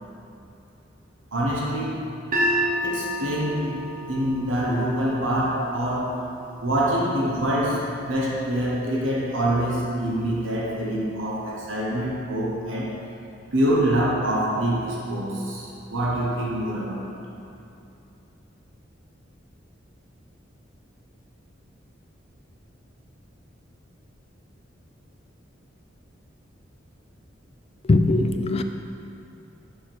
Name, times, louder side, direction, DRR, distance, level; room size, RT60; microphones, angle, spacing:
voice 1, 1.3-2.1 2.8-6.3 6.6-13.0 13.5-17.2, right 1 dB, 85° right, -4 dB, 1.0 m, -25 dB
sound 1, 2.3-8.5, equal, 45° right, 0.8 m, -31 dB
voice 2, 27.9-28.6, left 2 dB, 30° left, 7 dB, 0.3 m, -20 dB
6.4 x 5.0 x 4.6 m, 2.7 s
head